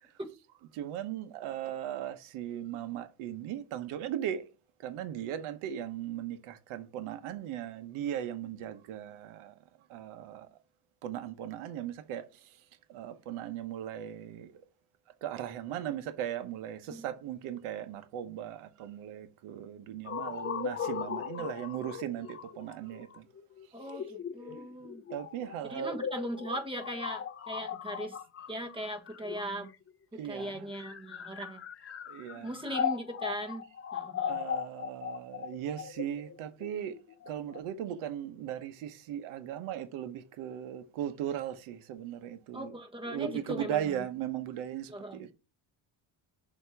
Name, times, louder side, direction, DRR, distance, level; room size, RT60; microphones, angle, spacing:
voice 1, 0.7-4.4 4.8-9.5 9.9-10.5 11.0-12.3 12.9-14.5 15.2-23.2 25.1-26.0 30.2-30.7 32.1-32.5 34.2-37.0 37.3-42.7 43.0-45.3, right 10 dB, 90° right, 1.0 m, -38 dB
sound 1, 20.1-29.9 30.6-37.6, left 7 dB, 30° left, 0.5 m, -38 dB
voice 2, 23.7-25.0 25.6-28.2 28.5-29.7 30.1-31.6 32.4-33.6 33.9-34.4 42.5-44.0 44.9-45.3, equal, 10° right, 1.4 m, -39 dB
6.7 x 3.0 x 5.7 m
cardioid pair, 95°, 48 cm